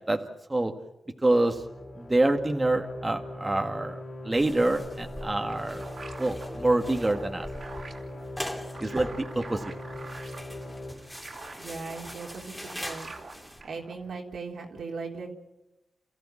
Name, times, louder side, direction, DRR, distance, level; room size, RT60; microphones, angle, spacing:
voice 1, 0.1-0.7 1.2-1.6 2.0-5.8 6.2-7.5 8.8-9.7, right 2 dB, 25° right, 4 dB, 1.8 m, -26 dB
sound 1, 1.5-10.9, left 1 dB, 55° left, 4.1 m, -40 dB
sound 2, 4.4-13.6, equal, 5° left, 3.3 m, -42 dB
sound 3, 4.9-14.2, right 3 dB, 60° right, 3.3 m, -46 dB
voice 2, 11.6-13.1 13.6-15.3, right 4 dB, 80° right, 1 dB, 3.7 m, -38 dB
29.0 x 14.5 x 8.6 m, 0.96 s
cardioid pair, 60°, 0 cm